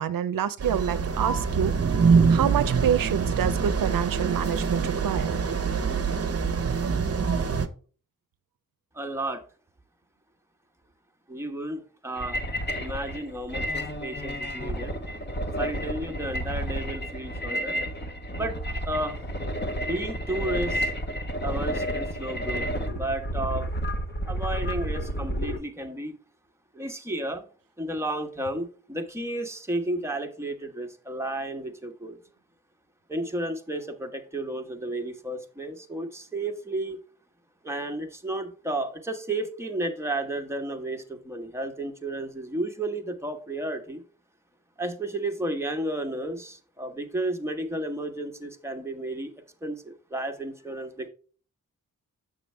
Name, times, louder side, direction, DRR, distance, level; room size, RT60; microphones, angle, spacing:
voice 1, 0.0-1.7 2.3-5.4, right 9 dB, 85° right, 0.5 m, -27 dB
sound 1, 0.6-7.7, right 5 dB, 45° right, 0.8 m, -24 dB
voice 2, 8.9-9.4 11.3-12.4 12.8-15.0 15.6-17.8 18.3-18.6 18.8-19.2 19.8-20.9 21.4-23.7 24.2-26.2 26.7-27.5 27.8-32.2 33.1-37.0 37.6-44.0 44.8-49.3 49.6-51.1, right 1 dB, 10° right, 1.2 m, -32 dB
sound 2, 12.2-25.6, equal, 30° left, 1.2 m, -31 dB
6.9 x 6.5 x 3.3 m
cardioid pair, 65°, 33 cm